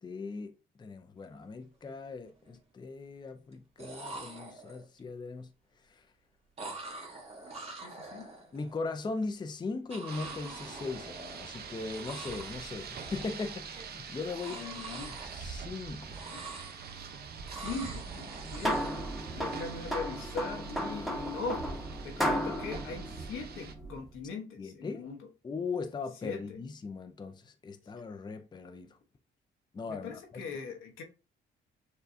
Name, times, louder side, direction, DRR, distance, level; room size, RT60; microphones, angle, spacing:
voice 1, 0.0-5.5 5.9-6.0 7.5-7.6 8.5-14.7 15.2-16.2 24.6-25.1 25.4-29.0 29.7-30.2, left 4 dB, 20° left, 0.5 m, -39 dB
sound 1, 1.4-1.5 1.9-2.5 3.5-3.6 3.8-5.0 6.6-8.8 9.9-11.6 11.9-12.6 12.9-13.7 14.2-17.1 17.5-19.0, right 2 dB, 30° right, 1.4 m, -45 dB
voice 2, 7.8-8.3 14.5-15.2 17.5-18.9 19.3-21.7 22.0-25.2 26.2-26.6 29.9-31.0, left 4 dB, 85° left, 1.0 m, -40 dB
Rain, 10.1-23.7, right 6 dB, 55° right, 0.6 m, -44 dB
sound 2, 18.2-24.1, equal, ahead, 1.0 m, -35 dB
6.7 x 2.3 x 2.6 m
cardioid pair, 90°, 20 cm